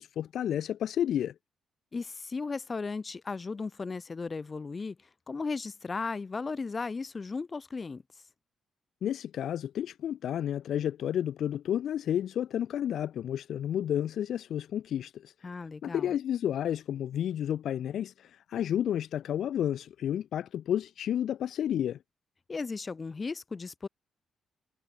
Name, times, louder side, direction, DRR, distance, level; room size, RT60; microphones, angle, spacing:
voice 1, 0.0-1.3 9.0-15.3 15.8-22.0, left 10 dB, 60° left, 0.7 m, -31 dB
voice 2, 1.9-5.0 5.3-8.0 15.4-16.1 22.5-23.9, left 4 dB, 25° left, 1.5 m, -36 dB
cardioid pair, 155°, 0 cm